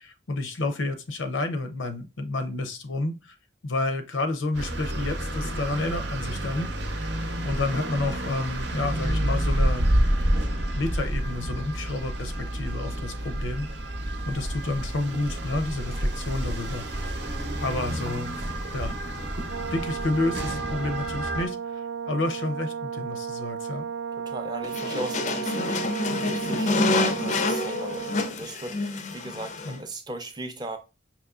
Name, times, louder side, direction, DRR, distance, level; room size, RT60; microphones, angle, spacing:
voice 1, 0.0-3.3 3.6-6.7 7.4-9.9 10.8-13.7 14.3-17.0 17.6-18.5 18.7-18.9 19.7-23.9 29.7-29.8, left 2 dB, 90° left, 0.6 m, -30 dB
sound 1, 4.5-21.5, right 1 dB, 65° right, 0.7 m, -29 dB
Brass instrument, 19.5-28.4, right 7 dB, 85° right, 0.3 m, -34 dB
voice 2, 24.2-30.8, right 2 dB, 20° right, 0.4 m, -38 dB
sound 2, 24.6-29.8, left 2 dB, 40° left, 0.3 m, -27 dB
5.2 x 2.9 x 2.4 m
head